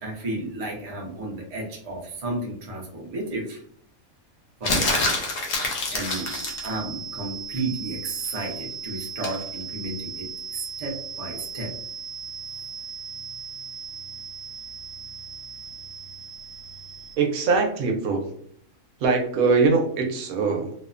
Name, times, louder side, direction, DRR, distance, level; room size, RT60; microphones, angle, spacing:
voice 1, 0.0-3.6 4.6-5.3 5.9-6.3 6.6-11.7, right 2 dB, 45° right, -1 dB, 0.5 m, -33 dB
sound 1, 4.6-6.7 9.2-9.4, left 2 dB, 60° left, 0.9 m, -26 dB
sound 2, 6.1-17.2, right 6 dB, 30° left, 0.3 m, -37 dB
voice 2, 17.2-18.3 19.0-20.7, right 4 dB, 80° right, 2 dB, 1.1 m, -22 dB
2.7 x 2.1 x 2.4 m, 0.65 s
omnidirectional pair, 1.5 m